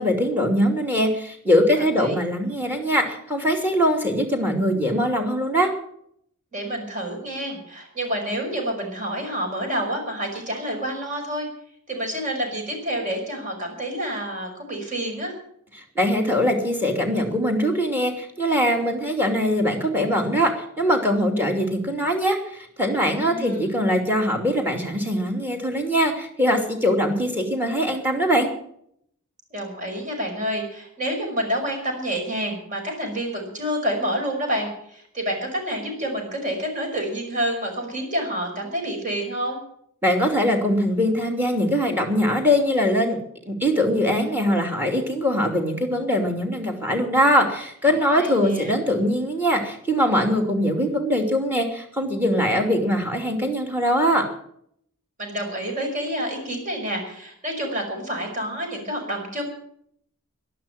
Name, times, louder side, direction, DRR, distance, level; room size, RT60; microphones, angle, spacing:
voice 1, 0.0-5.7 15.8-28.5 40.0-43.2 43.5-54.3, equal, 10° right, 4 dB, 2.8 m, -22 dB
voice 2, 1.8-2.2 6.5-11.5 11.9-15.3 23.2-23.7 29.5-39.6 48.2-48.8 55.2-59.4, equal, 35° right, 2 dB, 5.5 m, -28 dB
12.0 x 12.0 x 9.1 m, 0.69 s
head